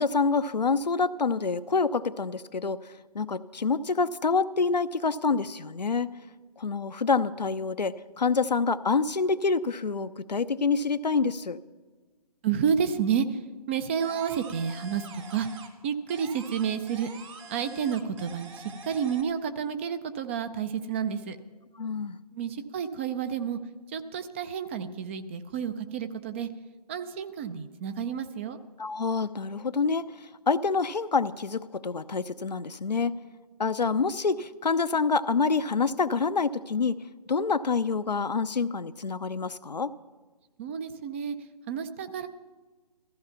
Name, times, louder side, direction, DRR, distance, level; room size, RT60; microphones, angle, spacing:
voice 1, 0.0-2.8 3.1-6.1 6.6-11.6 21.8-22.2 28.8-30.1 30.5-33.1 33.6-37.0 37.3-39.9, left 4 dB, 85° left, 11 dB, 0.8 m, -27 dB
voice 2, 12.4-13.4 13.7-15.5 15.8-17.1 17.5-21.4 22.3-23.6 23.9-26.5 26.9-28.6 40.6-41.4 41.7-42.3, right 7 dB, 20° right, 10 dB, 0.5 m, -30 dB
sound 1, 14.0-15.8 16.1-19.2, right 3 dB, 50° right, 2.8 m, -45 dB
15.5 x 14.5 x 5.8 m, 1.3 s
figure-of-eight pair, 145°, 21 cm